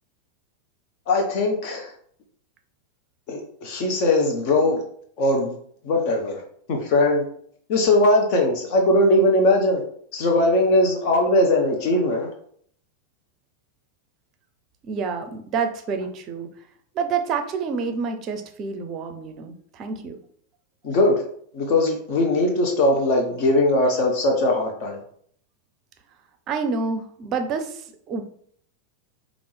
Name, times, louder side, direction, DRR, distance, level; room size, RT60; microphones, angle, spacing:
voice 1, 1.1-1.9 3.3-4.8 5.2-5.6 5.8-6.4 6.7-7.2 7.7-9.8 10.1-12.3 20.8-21.2 21.5-25.0, left 1 dB, 45° left, 2 dB, 0.8 m, -20 dB
voice 2, 14.8-16.5 16.9-20.2 26.5-28.2, right 5 dB, 35° right, 7 dB, 0.5 m, -28 dB
5.1 x 2.5 x 3.3 m, 0.62 s
figure-of-eight pair, 90°, 0 cm